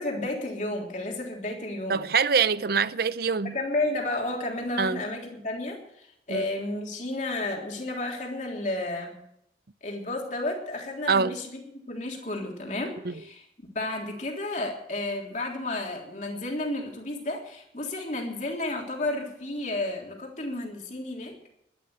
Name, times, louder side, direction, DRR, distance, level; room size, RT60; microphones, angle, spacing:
voice 1, 0.0-2.1 3.4-9.2 9.8-13.4 13.7-21.3, left 2 dB, 40° left, 3.4 m, -32 dB
voice 2, 1.9-3.6 4.8-5.0 6.3-6.4 11.1-11.4 13.0-13.1, right 5 dB, 55° right, 0.6 m, -24 dB
12.5 x 12.0 x 7.7 m
head